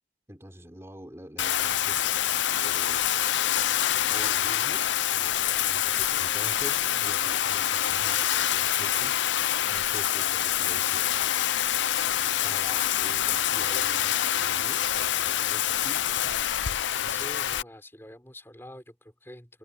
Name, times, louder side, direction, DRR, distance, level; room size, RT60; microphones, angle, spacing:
voice 1, 0.3-2.0 2.6-3.1 3.9-9.2 9.7-11.1 12.2-16.1, equal, 15° right, 4.3 m, -45 dB
Bathtub (filling or washing), 1.4-17.6, left 11 dB, 70° left, 0.6 m, -26 dB
voice 2, 17.0-19.6, left 1 dB, 10° left, 5.5 m, -45 dB
head